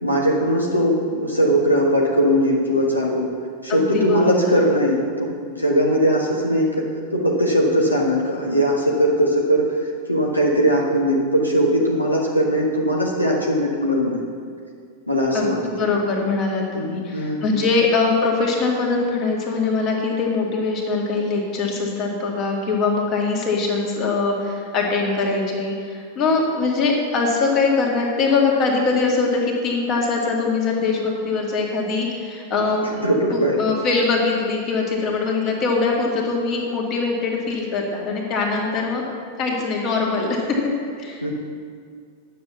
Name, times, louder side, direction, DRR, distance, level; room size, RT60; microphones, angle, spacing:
voice 1, 0.0-3.3 3.6-6.8 7.1-14.2 15.1-15.8 16.7-17.4 33.0-33.6 41.2-41.3, equal, 85° left, -3 dB, 1.4 m, -20 dB
voice 2, 3.7-4.3 15.3-15.5 15.8-33.0 33.3-39.0 39.4-40.7 41.0-41.3, left 4 dB, 40° left, -1 dB, 2.2 m, -22 dB
10.0 x 7.4 x 6.9 m, 2.1 s
figure-of-eight pair, 90°, 0 cm